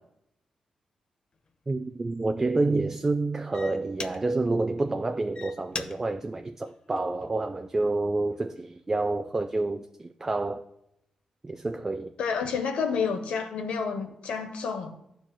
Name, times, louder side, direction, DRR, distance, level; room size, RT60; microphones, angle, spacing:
sound 1, 1.3-1.5 2.1-2.4 3.1-3.2 3.5-4.6 5.1-7.5 8.1-8.4, left 4 dB, 50° left, 0.5 m, -41 dB
voice 1, 1.7-10.6 11.4-12.1, right 2 dB, 25° right, 0.3 m, -28 dB
voice 2, 12.2-15.0, left 5 dB, 90° left, 0.7 m, -29 dB
12.5 x 4.5 x 2.2 m
cardioid pair, 75°, 2 cm